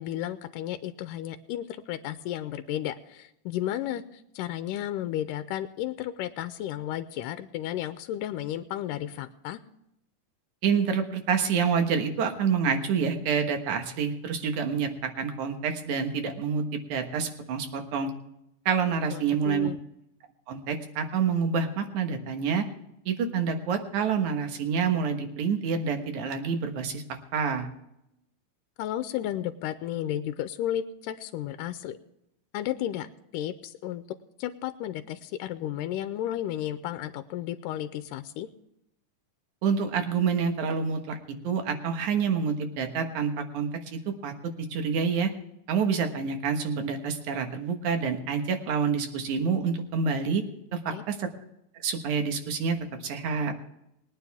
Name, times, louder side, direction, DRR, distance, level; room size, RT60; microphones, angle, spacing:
voice 1, 0.0-9.6 19.1-19.8 28.8-32.0 32.5-33.1 33.3-34.0 34.4-38.5 50.9-51.0, left 12 dB, 90° left, 10 dB, 2.2 m, -33 dB
voice 2, 10.6-16.6 16.9-18.1 18.7-19.7 20.5-22.6 23.1-27.0 27.3-27.7 39.6-41.2 41.4-45.3 45.7-50.4 50.7-51.2 51.8-53.5, right 6 dB, 70° right, 5 dB, 2.7 m, -27 dB
21.0 x 9.5 x 3.5 m, 0.82 s
omnidirectional pair, 3.7 m